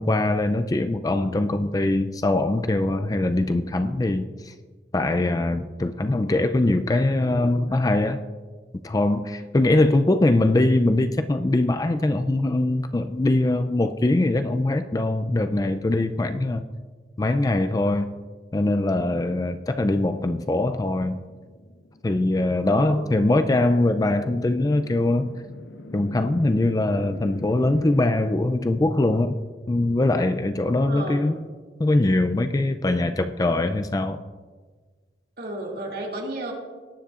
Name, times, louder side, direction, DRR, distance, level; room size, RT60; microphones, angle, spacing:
voice 1, 0.0-4.5 4.9-8.2 8.8-16.6 17.2-18.1 18.5-21.2 22.0-25.3 25.9-29.4 29.7-31.4 31.8-34.2, left 2 dB, 20° left, 8 dB, 0.3 m, -22 dB
sound 1, 20.4-28.1, left 1 dB, 90° left, 0.9 m, -43 dB
voice 2, 22.6-23.3 30.7-31.4 35.4-36.5, right 1 dB, 55° right, -2 dB, 2.4 m, -33 dB
18.5 x 9.9 x 2.5 m, 1.4 s
head